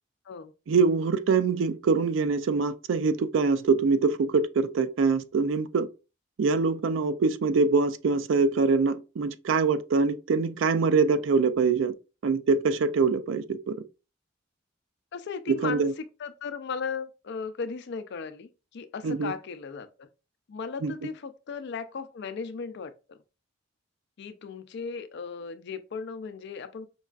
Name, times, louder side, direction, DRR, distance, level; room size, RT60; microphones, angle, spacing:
voice 1, 0.7-5.9 6.4-11.9 12.2-13.8 15.5-15.9 19.0-19.3 20.8-20.9, right 4 dB, 70° right, 0.4 m, -24 dB
voice 2, 15.1-20.1 20.5-23.2 24.2-26.9, left 5 dB, 60° left, 0.4 m, -36 dB
5.3 x 2.4 x 2.3 m
head